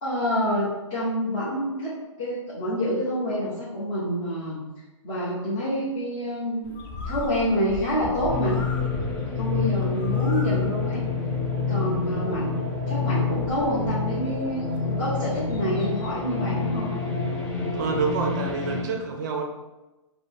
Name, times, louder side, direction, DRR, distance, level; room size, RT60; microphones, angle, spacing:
voice 1, 0.0-1.9 2.2-4.6 5.0-6.7 7.1-8.6 9.4-11.0 11.7-12.6 12.9-16.9, equal, 25° left, -10 dB, 1.2 m, -27 dB
Bird, 6.6-16.2, left 2 dB, 40° left, 0.8 m, -40 dB
sound 1, 8.3-18.8, left 4 dB, 10° left, 0.4 m, -27 dB
voice 2, 17.7-19.4, right 4 dB, 35° right, 2 dB, 0.6 m, -27 dB
4.8 x 2.2 x 4.7 m, 1.1 s
hypercardioid pair, 160°, 16 cm